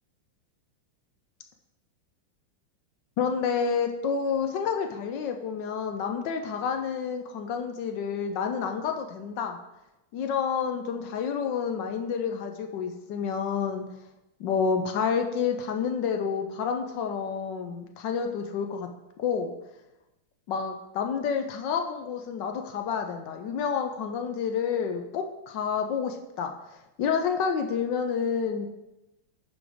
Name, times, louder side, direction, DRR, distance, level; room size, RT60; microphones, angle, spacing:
voice 1, 3.2-9.6 10.1-13.9 14.4-18.9 19.2-19.6 20.5-26.5 27.0-28.7, left 6 dB, 70° left, 4 dB, 1.2 m, -29 dB
9.0 x 4.2 x 5.0 m, 0.94 s
omnidirectional pair, 2.3 m